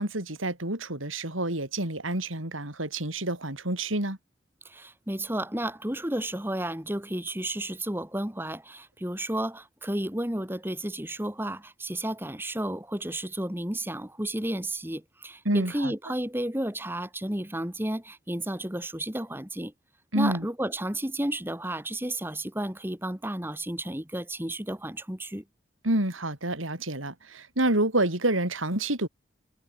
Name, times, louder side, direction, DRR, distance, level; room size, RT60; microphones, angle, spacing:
voice 1, 0.0-4.2 15.5-15.9 20.1-20.5 25.8-29.1, right 1 dB, 90° right, 5.8 m, -28 dB
voice 2, 4.6-19.7 20.1-25.4, right 1 dB, 10° right, 2.3 m, -32 dB
head